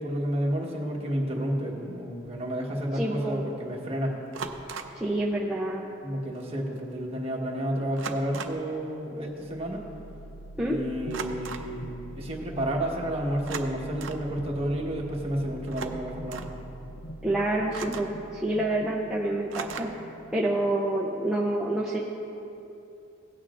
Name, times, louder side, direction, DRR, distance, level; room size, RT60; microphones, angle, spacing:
voice 1, 0.0-4.1 6.0-9.8 10.6-16.5, equal, 30° right, -2 dB, 1.3 m, -31 dB
sound 1, 2.3-2.4 4.3-5.0 6.4-6.5 6.8-7.0 8.0-8.7 11.1-11.7 13.4-14.3 15.6-16.6 17.7-18.2 19.5-20.1, right 5 dB, 70° right, 0.6 m, -38 dB
voice 2, 2.9-3.5 4.9-5.8 10.6-10.8 17.2-20.0 20.3-22.0, right 1 dB, 5° right, -5 dB, 0.5 m, -28 dB
sound 2, 9.2-21.1, right 1 dB, 60° left, 0.7 m, -44 dB
16.5 x 8.9 x 2.5 m, 2.8 s
head